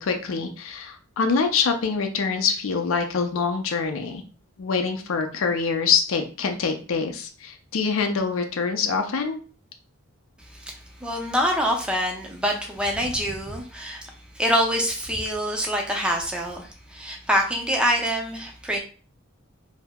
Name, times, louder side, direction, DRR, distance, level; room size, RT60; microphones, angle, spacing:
voice 1, 0.0-4.2 4.6-9.4, left 5 dB, 85° left, 5 dB, 0.5 m, -25 dB
voice 2, 10.5-18.8, equal, 5° right, 0 dB, 0.6 m, -25 dB
2.7 x 2.1 x 3.5 m, 0.38 s
head